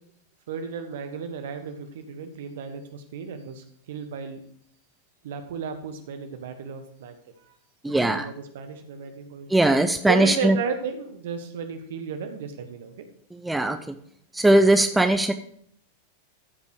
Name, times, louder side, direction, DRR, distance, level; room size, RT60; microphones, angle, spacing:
voice 1, 0.5-4.4 5.2-7.5 7.8-9.7 10.1-13.0 13.6-13.7, right 6 dB, 55° right, 8 dB, 1.4 m, -34 dB
voice 2, 7.8-8.3 9.5-10.6 13.3-14.0 14.3-15.3, right 1 dB, 5° right, 8 dB, 0.6 m, -20 dB
14.0 x 5.4 x 4.9 m, 0.64 s
figure-of-eight pair, 90°, 0 cm